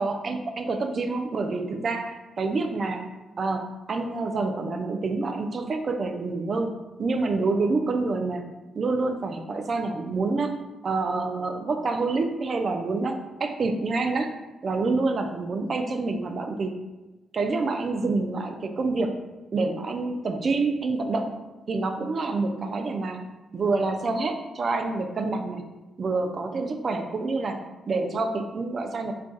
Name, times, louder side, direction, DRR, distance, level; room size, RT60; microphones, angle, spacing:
voice 1, 0.0-3.1 3.4-6.7 7.0-8.4 8.8-10.5 10.8-14.3 14.6-16.7 17.3-19.2 19.5-21.4 21.7-23.2 23.5-25.6 26.0-29.1, right 3 dB, 50° right, 6 dB, 0.4 m, -27 dB
2.3 x 2.2 x 3.9 m, 1.1 s
hypercardioid pair, 50°, 0 cm